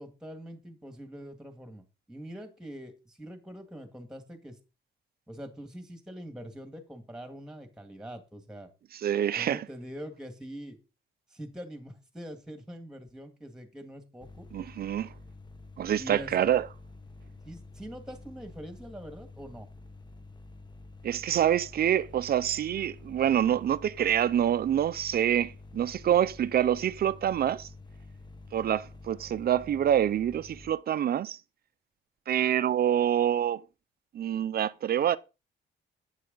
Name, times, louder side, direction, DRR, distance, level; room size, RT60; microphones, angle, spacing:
voice 1, 0.0-4.6 5.3-8.7 9.4-10.8 11.3-14.5 16.0-16.5 17.5-19.7, equal, 5° right, 1.9 m, -44 dB
voice 2, 9.0-9.6 14.5-15.1 15.8-16.6 21.0-27.7 28.5-31.4 32.3-33.6 34.1-35.2, right 10 dB, 50° right, 0.6 m, -26 dB
sound 1, 14.2-30.7, left 2 dB, 20° left, 1.1 m, -49 dB
11.0 x 9.8 x 4.0 m
wide cardioid pair, 170°, 20 cm